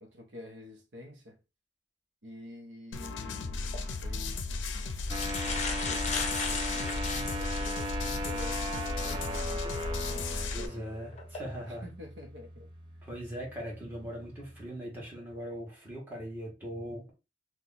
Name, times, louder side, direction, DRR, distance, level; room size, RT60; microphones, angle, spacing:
voice 1, 0.0-1.4 2.2-4.4 5.4-10.9 11.7-12.7, left 1 dB, 70° right, 0.8 m, -48 dB
sound 1, 2.9-10.7, left 3 dB, 85° left, 0.5 m, -35 dB
Paper Crumple (long), 3.6-3.8 4.6-4.7 5.0-7.8 8.4-8.5 10.3-10.5 11.1-11.4, left 5 dB, 40° left, 0.6 m, -36 dB
sound 2, 5.1-14.7, equal, 25° right, 0.5 m, -38 dB
voice 2, 10.5-11.8 13.0-17.1, equal, 10° right, 1.4 m, -40 dB
2.9 x 2.3 x 3.9 m
head